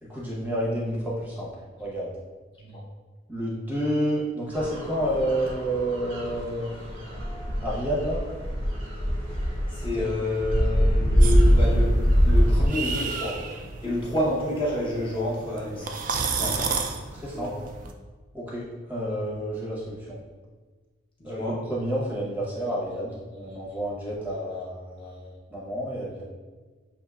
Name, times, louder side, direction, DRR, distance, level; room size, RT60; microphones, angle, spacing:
voice 1, 0.0-1.5 1.8-2.1 3.3-6.7 7.6-8.2 10.0-10.1 17.1-17.5 18.3-20.2 21.2-26.2, equal, 10° right, -5 dB, 0.8 m, -30 dB
sound 1, 4.5-12.7, equal, 80° right, 1.0 m, -23 dB
voice 2, 9.7-11.9 12.2-13.4 13.8-15.9 16.3-16.7 17.3-17.5 21.2-21.6, left 1 dB, 25° left, -7 dB, 0.7 m, -29 dB
sound 2, 11.2-17.9, right 5 dB, 40° right, 0.3 m, -33 dB
6.7 x 2.7 x 2.3 m, 1.4 s
head